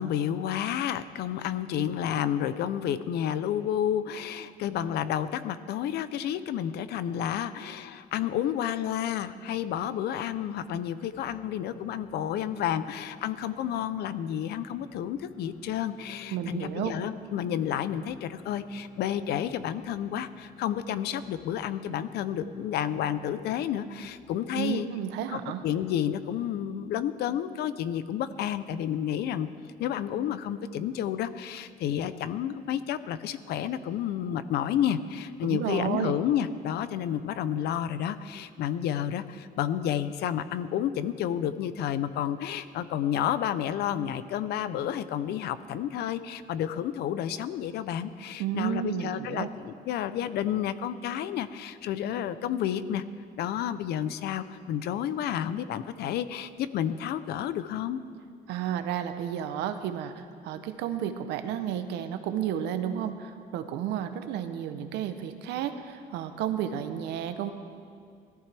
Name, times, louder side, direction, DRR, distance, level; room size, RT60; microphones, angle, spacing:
voice 1, 0.0-24.9 25.3-29.5 29.8-53.0 53.4-58.0, left 10 dB, 75° left, 13 dB, 0.6 m, -30 dB
sound 1, 11.1-24.5, left 3 dB, 35° left, 2.2 m, -52 dB
voice 2, 16.3-17.0 24.6-25.6 35.4-36.1 48.4-49.5 58.5-67.5, right 10 dB, 85° right, 8 dB, 0.8 m, -32 dB
18.0 x 13.5 x 3.4 m, 2.3 s
cardioid pair, 110°, 17 cm